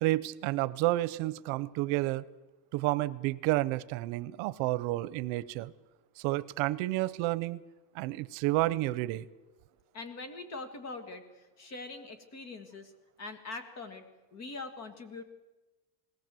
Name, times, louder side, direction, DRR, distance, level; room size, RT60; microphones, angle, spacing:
voice 1, 0.0-2.2 2.7-5.7 6.2-7.6 7.9-9.2, right 18 dB, 80° right, 18 dB, 0.8 m, -30 dB
voice 2, 9.9-12.9 13.2-14.0 14.3-15.2, left 3 dB, 35° left, 9 dB, 1.9 m, -43 dB
20.0 x 18.0 x 7.6 m, 1.1 s
cardioid pair, 180°, 46 cm